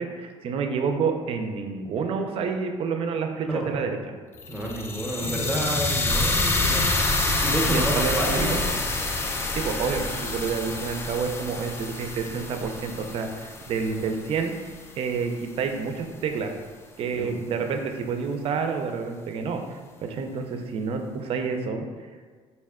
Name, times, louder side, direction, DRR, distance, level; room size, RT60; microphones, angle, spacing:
voice 1, 0.0-4.1 7.6-8.6 9.5-14.5 15.0-16.5 17.0-21.9, right 5 dB, 55° right, 5 dB, 0.4 m, -29 dB
voice 2, 3.4-3.8 4.5-6.9 7.4-8.8 17.2-17.4, equal, 5° right, -3 dB, 0.7 m, -29 dB
sound 1, 4.4-14.5, left 2 dB, 20° left, 0.3 m, -27 dB
4.1 x 2.2 x 3.5 m, 1.5 s
cardioid pair, 120°, 12 cm